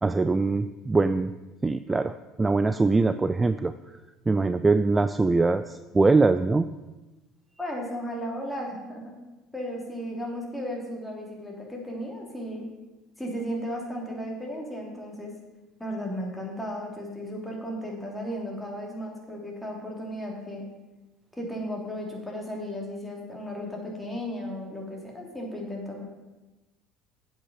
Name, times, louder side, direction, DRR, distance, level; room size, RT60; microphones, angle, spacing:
voice 1, 0.0-1.3 1.6-3.7 4.3-6.7, right 3 dB, 20° right, 12 dB, 0.4 m, -23 dB
voice 2, 7.6-9.2 9.5-12.7 13.2-15.3 15.8-20.7 21.3-26.1, equal, 5° left, -2 dB, 3.1 m, -35 dB
8.0 x 5.8 x 6.8 m, 1.1 s
hypercardioid pair, 75°, 0 cm